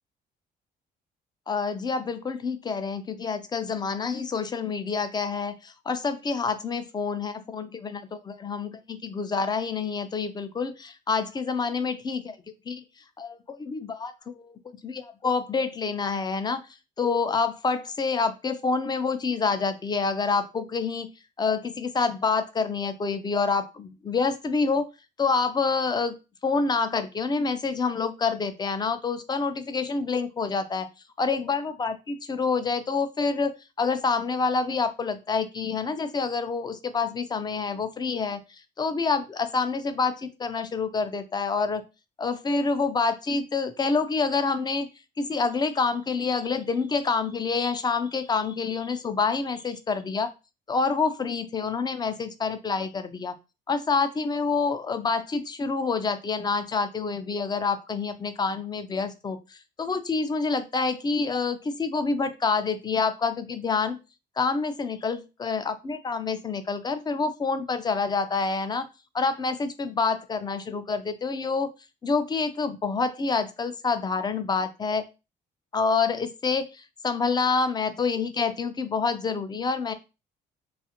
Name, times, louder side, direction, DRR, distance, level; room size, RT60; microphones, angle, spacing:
voice 1, 1.5-12.4 12.7-12.8 13.2-16.6 17.0-21.1 21.4-24.9 25.2-30.8 31.2-41.8 42.2-44.9 45.2-50.3 50.7-53.3 53.7-64.0 64.4-68.9 69.1-71.7 72.0-75.1 75.7-79.9, left 4 dB, 25° left, 10 dB, 0.4 m, -27 dB
2.4 x 2.4 x 2.8 m, 0.28 s
cardioid pair, 100°, 18 cm